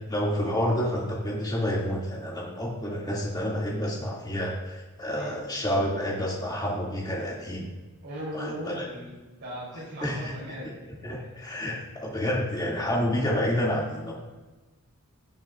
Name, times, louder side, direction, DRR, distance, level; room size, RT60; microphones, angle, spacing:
voice 1, 0.1-7.7 8.3-8.8 10.0-10.5 11.0-14.1, equal, 20° left, -4 dB, 2.3 m, -29 dB
voice 2, 8.0-10.7, equal, 55° right, -5 dB, 3.4 m, -38 dB
18.0 x 7.0 x 2.4 m, 1.2 s
head